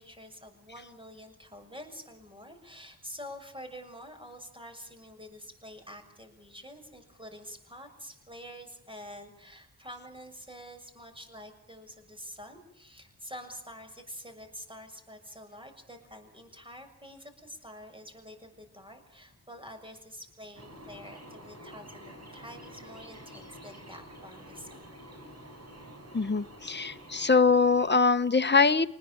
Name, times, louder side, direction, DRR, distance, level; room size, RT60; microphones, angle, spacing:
voice 1, 0.0-24.8, equal, 15° right, 6 dB, 6.8 m, -47 dB
sound 1, 20.5-27.9, equal, 40° right, 6.5 m, -48 dB
voice 2, 26.1-28.9, left 4 dB, 30° left, 10 dB, 1.1 m, -23 dB
25.5 x 20.5 x 8.8 m, 0.71 s
wide cardioid pair, 65°, 38 cm